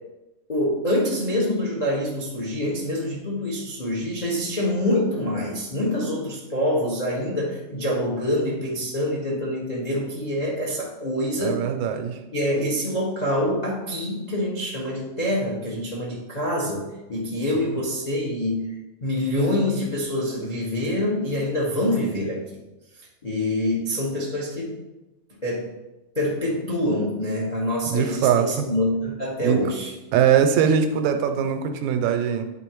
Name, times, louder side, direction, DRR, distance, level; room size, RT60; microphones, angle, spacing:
voice 1, 0.5-11.6 12.3-18.6 19.0-22.4 23.2-24.8 25.4-25.7 26.1-29.9, left 1 dB, 85° left, -4 dB, 0.3 m, -25 dB
voice 2, 11.4-12.2 17.7-17.8 27.9-28.7 29.4-29.6 30.1-32.4, right 8 dB, 90° right, 7 dB, 2.0 m, -21 dB
10.0 x 3.8 x 4.6 m, 1.0 s
omnidirectional pair, 3.3 m